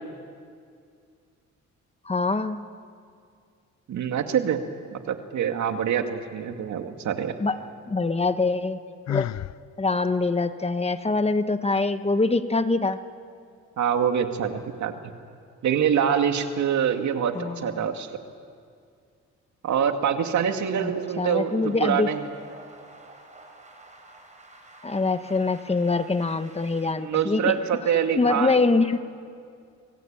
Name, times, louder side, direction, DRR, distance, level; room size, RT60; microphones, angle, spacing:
voice 1, 2.0-2.6 7.4-7.6 7.9-8.8 9.1-9.3 9.8-13.0 17.3-17.9 20.8-22.1 24.8-27.6 28.2-29.0, left 3 dB, 20° left, 10 dB, 1.3 m, -24 dB
voice 2, 3.9-4.6 4.9-7.3 13.8-15.1 15.6-18.1 19.6-22.3 27.0-28.6, right 8 dB, 70° right, 6 dB, 2.4 m, -25 dB
Sigh, 9.1-9.6, left 12 dB, 60° left, 0.6 m, -29 dB
sound 1, 20.4-26.9, right 2 dB, 25° right, 5.4 m, -48 dB
29.5 x 22.0 x 9.0 m, 2.2 s
cardioid pair, 90°, 30 cm